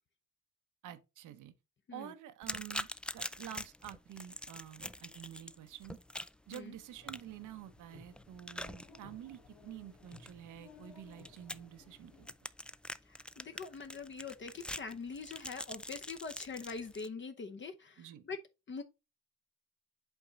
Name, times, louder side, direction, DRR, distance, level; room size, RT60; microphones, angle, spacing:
voice 1, 0.8-1.5 1.9-2.9 3.1-6.0 6.5-12.3 18.0-18.2, right 11 dB, 85° right, 0.9 m, -49 dB
sound 1, 2.4-17.1, left 1 dB, 5° left, 0.3 m, -46 dB
sound 2, 7.0-12.3, left 4 dB, 75° left, 2.7 m, -59 dB
voice 2, 13.1-18.4 18.7-18.8, left 4 dB, 40° left, 0.8 m, -44 dB
8.3 x 3.6 x 4.0 m
cardioid pair, 90°, 30 cm